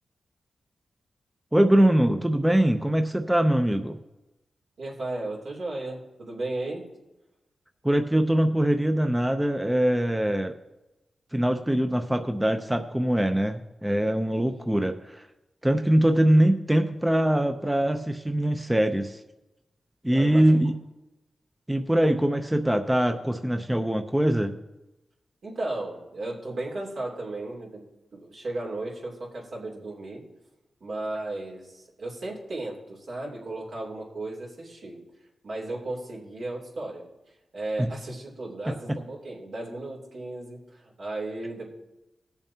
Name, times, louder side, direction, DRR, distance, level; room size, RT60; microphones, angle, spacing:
voice 1, 1.5-4.0 7.8-10.6 11.3-15.3 15.6-19.2 20.0-20.8 21.7-24.5 37.8-37.9, right 1 dB, 10° right, 6 dB, 0.6 m, -23 dB
voice 2, 4.8-6.9 20.1-20.5 25.4-27.8 28.1-30.2 30.8-35.0 35.4-37.0 37.5-41.7, right 2 dB, 70° right, -2 dB, 2.9 m, -35 dB
20.5 x 7.1 x 2.8 m, 0.98 s
cardioid pair, 85°, 0 cm